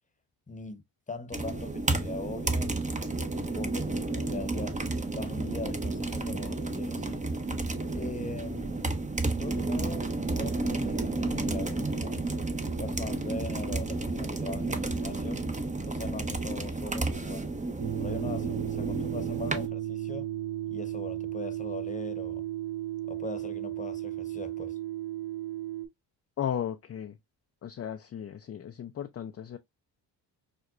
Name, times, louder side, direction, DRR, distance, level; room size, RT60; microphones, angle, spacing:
voice 1, 0.5-4.8 5.1-7.3 7.9-8.9 9.2-12.2 12.8-15.5 15.9-17.5 18.0-20.3 20.7-22.4 23.1-24.8, left 3 dB, 15° left, 0.9 m, -41 dB
sound 1, 1.3-19.7, right 2 dB, 15° right, 0.6 m, -31 dB
sound 2, 17.8-25.9, right 13 dB, 45° right, 0.9 m, -34 dB
voice 2, 26.4-27.2 27.6-29.6, left 9 dB, 30° left, 0.4 m, -35 dB
5.9 x 2.1 x 2.4 m
supercardioid pair, 45°, 49 cm